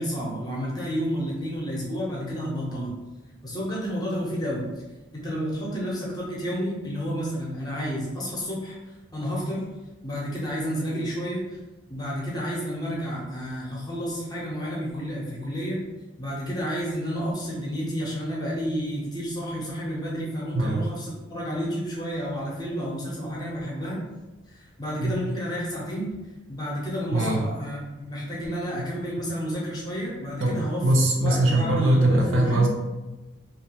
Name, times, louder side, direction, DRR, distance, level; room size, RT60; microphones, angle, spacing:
voice 1, 0.0-2.9 3.4-4.7 5.1-8.8 9.1-9.6 10.0-11.4 11.9-15.8 16.2-24.0 24.5-26.1 26.5-30.8 31.2-32.7, equal, 20° left, -5 dB, 0.6 m, -30 dB
voice 2, 30.4-32.7, right 1 dB, 65° right, -1 dB, 0.5 m, -21 dB
2.4 x 2.3 x 2.8 m, 1.1 s
head